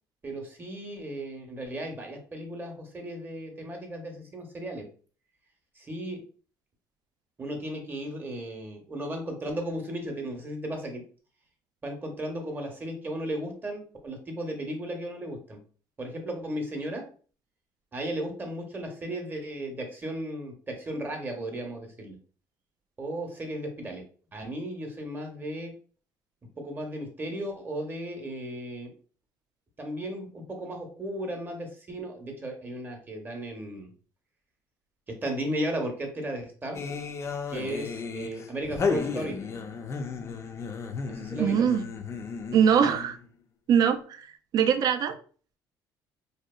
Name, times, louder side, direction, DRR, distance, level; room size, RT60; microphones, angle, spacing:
voice 1, 0.2-4.8 5.8-6.2 7.4-11.0 11.8-15.6 16.0-17.0 17.9-22.2 23.0-24.0 24.3-25.7 26.6-28.9 29.8-33.9 35.2-36.8 37.5-39.4 41.1-41.7, right 1 dB, 25° right, 0.7 m, -35 dB
sound 1, 36.7-43.3, left 5 dB, 35° left, 0.3 m, -34 dB
voice 2, 41.4-41.9 42.5-43.2 43.7-44.3 44.5-45.1, right 8 dB, 55° right, 0.3 m, -22 dB
2.7 x 2.3 x 2.2 m
cardioid pair, 100°, 8 cm